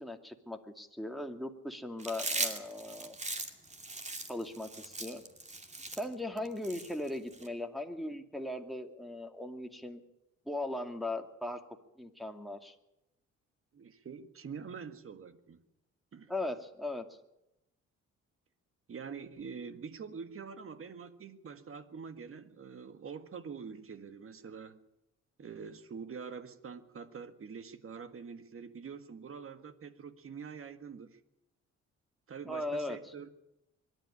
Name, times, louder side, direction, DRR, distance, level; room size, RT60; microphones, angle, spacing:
voice 1, 0.0-3.2 4.3-5.2 6.0-10.0 10.5-11.6 12.0-12.7 16.3-17.1 32.4-33.0, left 1 dB, ahead, 3 dB, 2.4 m, -38 dB
Chewing mastication, 2.0-7.5, right 2 dB, 25° right, 2.5 m, -39 dB
voice 2, 13.7-15.6 16.1-16.3 18.9-24.8 25.4-31.2 32.3-33.3, right 6 dB, 45° right, 10 dB, 1.8 m, -45 dB
24.0 x 12.0 x 10.0 m, 0.87 s
cardioid pair, 90°, 30 cm